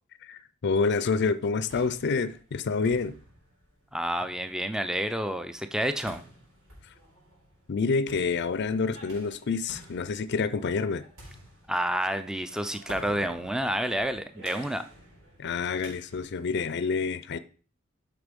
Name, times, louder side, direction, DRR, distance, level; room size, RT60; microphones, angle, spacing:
voice 1, 0.2-3.1 7.7-11.0 15.4-17.4, left 4 dB, 55° left, 0.5 m, -28 dB
sound 1, 1.3-16.5, equal, 70° right, 5.3 m, -50 dB
voice 2, 3.9-6.2 11.7-14.8, right 1 dB, 5° right, 0.4 m, -29 dB
8.1 x 6.0 x 5.2 m
head